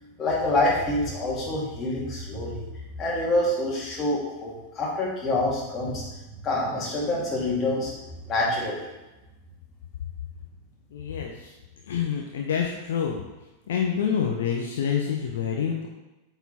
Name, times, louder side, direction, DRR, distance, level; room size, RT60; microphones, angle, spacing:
voice 1, 0.0-2.6 3.0-6.0 6.4-7.9 8.3-8.8, left 1 dB, 25° left, -4 dB, 2.3 m, -26 dB
voice 2, 10.9-11.3 11.9-13.2 13.7-15.9, left 7 dB, 60° left, 1 dB, 0.7 m, -27 dB
8.0 x 4.1 x 4.1 m, 1.0 s
figure-of-eight pair, 90°, 0 cm